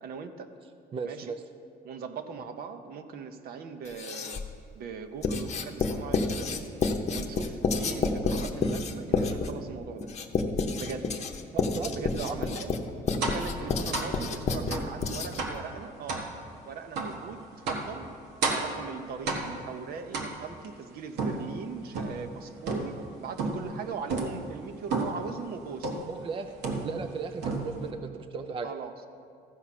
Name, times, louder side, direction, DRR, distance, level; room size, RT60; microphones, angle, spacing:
voice 1, 0.0-0.5 1.0-1.4 1.8-4.4 4.7-6.5 7.1-10.1 10.8-11.1 11.9-12.7 13.2-16.3 16.6-17.4 17.7-18.0 18.5-25.9 28.6-28.9, right 6 dB, 65° right, 8 dB, 0.8 m, -40 dB
voice 2, 0.9-1.4 11.5-12.4 26.1-26.5 26.8-28.7, right 5 dB, 30° right, 8 dB, 0.4 m, -36 dB
Writing, 3.9-4.6 5.2-15.6, left 4 dB, 40° left, 0.8 m, -29 dB
sound 1, 13.2-13.5 13.9-14.2 14.7-14.9 15.4-15.7 16.1-16.3 17.0-17.2 17.7-17.9 18.4-18.8 19.3-19.7 20.1-20.7 21.2-22.3 22.7-23.1 23.4-23.7 24.1-24.4 24.9-25.3 25.8-26.2 26.6-27.1 27.4-27.9, right 3 dB, 80° right, 1.3 m, -31 dB
14.0 x 4.9 x 5.9 m, 2.4 s
cardioid pair, 110°, 17 cm